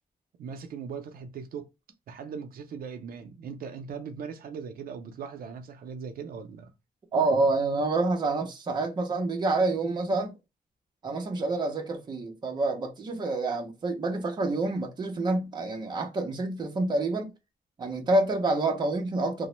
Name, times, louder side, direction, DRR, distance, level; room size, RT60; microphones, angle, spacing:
voice 1, 0.4-1.7 2.1-6.7, right 6 dB, 80° right, 0.5 m, -39 dB
voice 2, 7.1-10.3 11.0-17.3 17.8-19.5, right 2 dB, 30° right, 0.6 m, -27 dB
2.9 x 2.0 x 2.9 m
wide cardioid pair, 180°, 15 cm